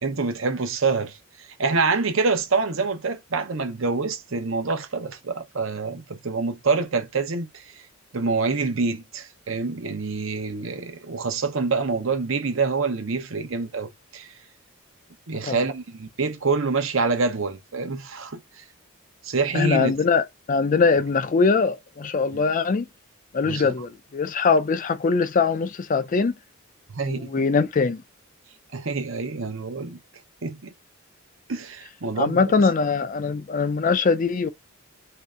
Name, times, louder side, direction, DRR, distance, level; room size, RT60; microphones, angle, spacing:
voice 1, 0.0-7.8 8.1-14.3 15.3-18.6 19.2-19.9 22.3-22.4 23.4-23.7 26.9-27.4 28.7-30.0 30.4-30.7 31.5-32.5, right 4 dB, 65° right, 0.8 m, -26 dB
voice 2, 19.5-22.9 23.3-26.3 27.1-28.0 32.2-34.5, left 4 dB, 40° left, 0.4 m, -22 dB
3.1 x 2.8 x 3.6 m
head